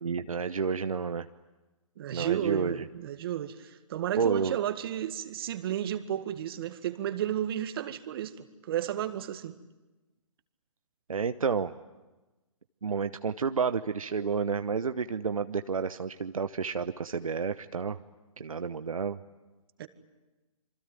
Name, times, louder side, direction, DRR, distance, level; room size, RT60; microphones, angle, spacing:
voice 1, 0.0-1.3 2.1-2.9 4.2-4.6 11.1-11.7 12.8-18.0 18.4-19.2, right 5 dB, 75° right, 1.0 m, -30 dB
voice 2, 2.0-9.6 19.8-19.9, right 11 dB, 40° right, 1.9 m, -33 dB
27.0 x 24.5 x 9.0 m
figure-of-eight pair, 135°, 18 cm